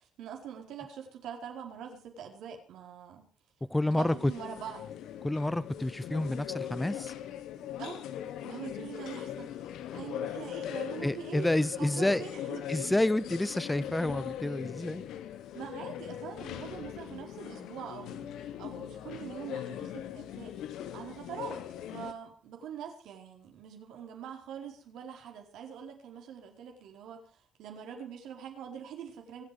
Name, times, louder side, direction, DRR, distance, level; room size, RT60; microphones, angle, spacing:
voice 1, 0.0-3.3 3.9-4.9 7.8-8.1 8.4-11.5 11.8-12.9 15.5-20.6 20.9-29.4, right 8 dB, 85° right, 4.5 m, -44 dB
voice 2, 3.7-4.1 5.2-7.1 11.0-12.2 12.7-15.1, left 1 dB, 10° left, 0.6 m, -29 dB
sound 1, 4.0-22.1, left 10 dB, 85° left, 1.3 m, -40 dB
25.5 x 8.5 x 5.2 m
cardioid pair, 90°, 0 cm